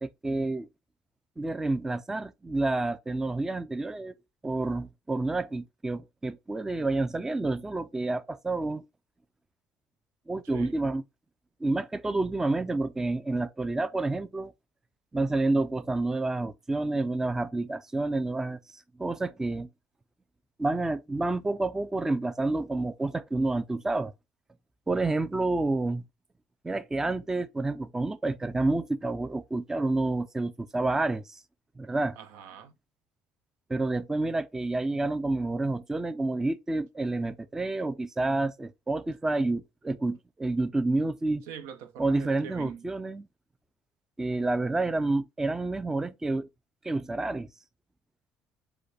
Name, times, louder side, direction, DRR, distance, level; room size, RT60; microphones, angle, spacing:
voice 1, 0.0-0.7 1.4-4.1 4.4-8.8 10.3-11.0 11.6-14.5 15.1-19.7 20.6-24.1 24.9-26.0 26.6-31.4 31.8-32.2 33.7-41.4 42.0-43.3 44.2-46.5 46.8-47.5, right 2 dB, 10° right, 0.3 m, -29 dB
voice 2, 32.2-32.7 41.5-42.9, right 8 dB, 85° right, 0.8 m, -43 dB
4.9 x 2.2 x 4.6 m
cardioid pair, 135°, 5 cm